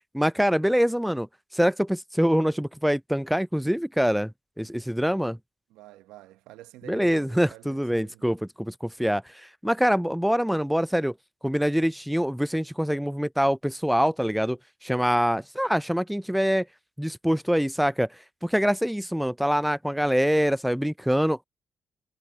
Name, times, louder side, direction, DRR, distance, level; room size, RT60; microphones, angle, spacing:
voice 1, 0.1-1.3 1.5-4.3 4.6-5.4 6.8-11.1 11.4-16.7 17.0-18.1 18.4-21.4, equal, 5° right, 0.3 m, -24 dB
voice 2, 5.7-8.3, right 16 dB, 85° right, 0.8 m, -49 dB
hypercardioid pair, 45°, 0 cm